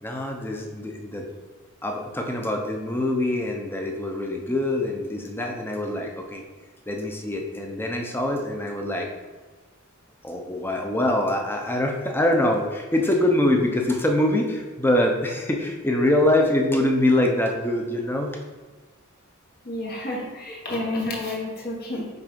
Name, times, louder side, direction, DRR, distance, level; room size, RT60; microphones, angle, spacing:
voice 1, 0.0-1.3 1.8-6.4 6.9-9.1 10.2-18.4, left 1 dB, 10° left, 2 dB, 0.8 m, -24 dB
voice 2, 19.6-22.1, left 1 dB, 45° left, -2 dB, 1.4 m, -30 dB
6.0 x 4.0 x 5.3 m, 1.3 s
head